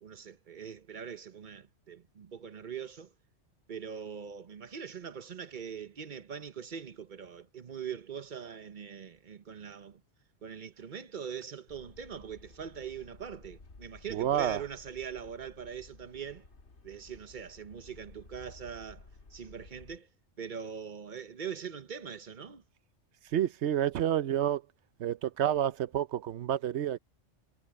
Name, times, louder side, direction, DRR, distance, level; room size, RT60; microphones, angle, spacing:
voice 1, 0.0-3.1 3.7-10.0 10.4-16.4 16.8-19.1 19.3-20.1 20.4-22.6, right 7 dB, 45° right, 1.0 m, -42 dB
sound 1, 11.7-20.0, left 3 dB, 60° left, 2.4 m, -55 dB
voice 2, 14.1-14.6 23.3-24.6 25.0-27.0, right 11 dB, 65° right, 0.9 m, -29 dB
omnidirectional pair, 1.3 m